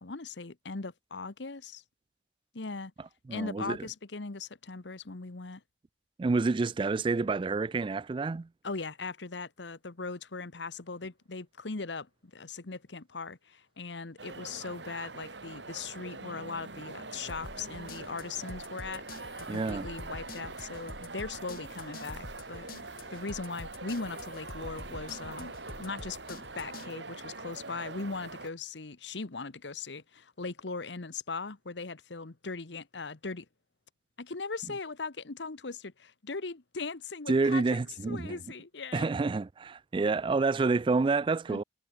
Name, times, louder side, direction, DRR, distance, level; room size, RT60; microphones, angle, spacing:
voice 1, 0.0-1.8 2.5-2.9 3.3-5.6 8.6-33.4 34.2-37.8 38.1-39.1 41.5-41.6, left 4 dB, 85° left, 1.2 m, -39 dB
voice 2, 3.3-3.8 6.2-8.5 19.5-19.9 37.3-38.4 38.9-41.6, right 3 dB, 30° right, 0.3 m, -28 dB
sound 1, 14.2-28.5, right 3 dB, 85° right, 4.4 m, -44 dB
sound 2, 17.3-26.9, left 2 dB, 55° left, 1.9 m, -47 dB
head